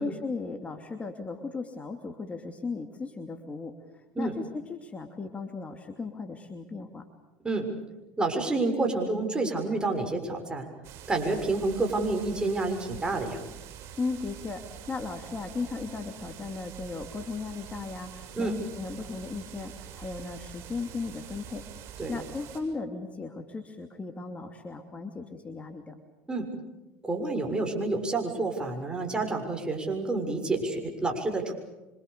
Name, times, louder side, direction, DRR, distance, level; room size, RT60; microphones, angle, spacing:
voice 1, 0.0-3.7 4.2-7.0 14.0-21.6 22.1-25.9, left 4 dB, 25° left, 5 dB, 2.8 m, -36 dB
voice 2, 8.2-10.7 11.1-13.4 18.4-18.5 22.0-22.2 26.3-26.5 27.0-31.5, right 3 dB, 15° right, 3 dB, 6.9 m, -29 dB
sound 1, 10.8-22.6, right 10 dB, 55° right, 6.9 m, -45 dB
27.0 x 26.0 x 7.0 m, 1.0 s
hypercardioid pair, 85°, 6 cm